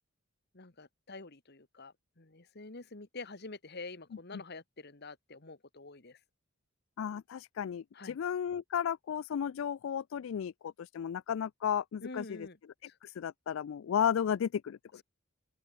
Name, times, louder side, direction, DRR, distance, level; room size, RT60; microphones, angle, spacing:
voice 1, 0.5-6.2 7.9-8.2 12.0-12.6 12.9-13.0, left 3 dB, 50° left, 1.8 m, -47 dB
voice 2, 7.0-12.5 13.0-15.0, left 8 dB, 70° left, 0.3 m, -34 dB
open air
head